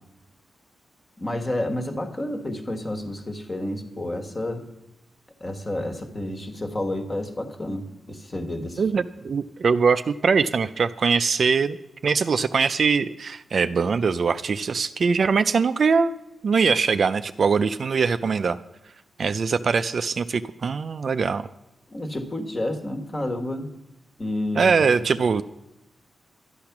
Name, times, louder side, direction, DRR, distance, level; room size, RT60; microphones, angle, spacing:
voice 1, 1.2-4.7 5.4-8.8 21.9-23.7 24.2-24.7, left 1 dB, 25° left, 5 dB, 1.4 m, -30 dB
voice 2, 8.8-11.8 12.0-16.1 16.4-18.6 19.2-21.5 24.6-25.4, right 5 dB, 50° right, 11 dB, 0.4 m, -22 dB
11.5 x 10.5 x 5.9 m, 0.92 s
wide cardioid pair, 130°, 0 cm